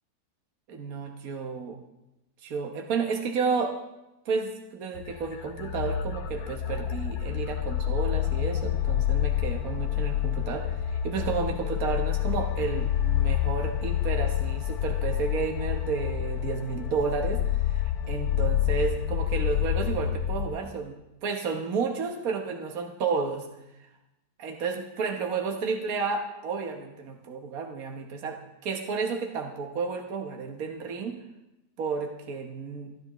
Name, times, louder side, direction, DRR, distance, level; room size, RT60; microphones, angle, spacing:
voice 1, 0.7-1.8 2.4-3.8 4.2-21.0 21.2-23.5 23.8-23.9 24.4-31.2 31.8-32.9, right 5 dB, 70° right, 2 dB, 1.5 m, -31 dB
sound 1, 5.0-20.6, left 11 dB, 80° left, 1.2 m, -28 dB
29.5 x 10.0 x 3.0 m, 0.94 s
omnidirectional pair, 1.6 m